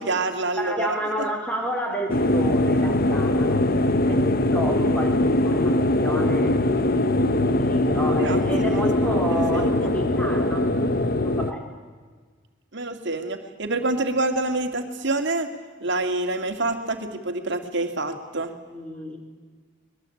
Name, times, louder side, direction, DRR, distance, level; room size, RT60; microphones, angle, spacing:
voice 1, 0.0-1.3 8.2-8.9 9.3-9.9 12.7-15.5 15.8-18.5, right 2 dB, 60° right, 6 dB, 2.4 m, -27 dB
voice 2, 0.6-3.6 4.1-4.2 4.5-5.7 6.0-6.7 7.4-10.7 11.2-11.6 18.7-19.2, equal, 5° left, 2 dB, 4.0 m, -30 dB
sound 1, 2.1-11.5, left 1 dB, 45° left, 1.0 m, -21 dB
23.5 x 21.0 x 8.6 m, 1.5 s
head